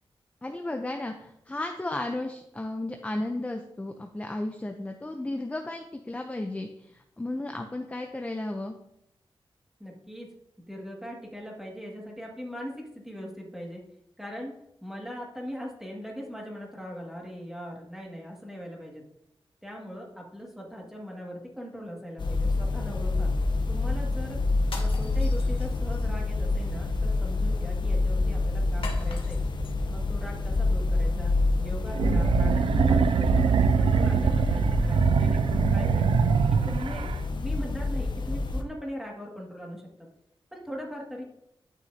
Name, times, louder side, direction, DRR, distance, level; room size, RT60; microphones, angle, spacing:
voice 1, 0.4-8.8, left 2 dB, 15° left, 4 dB, 0.7 m, -34 dB
voice 2, 9.8-10.3 10.7-13.8 14.2-19.0 19.6-23.3 23.7-24.4 24.7-29.4 29.9-31.3 31.6-36.1 36.5-37.0 37.3-39.8 40.5-41.2, equal, 5° right, -2 dB, 2.1 m, -40 dB
sound 1, 22.2-38.6, left 3 dB, 55° left, 1.0 m, -28 dB
sound 2, 24.6-26.1 28.8-29.7, left 4 dB, 70° left, 1.4 m, -42 dB
sound 3, 31.9-37.2, right 6 dB, 70° right, 0.4 m, -23 dB
11.5 x 6.3 x 2.8 m, 0.78 s
wide cardioid pair, 95°, 10 cm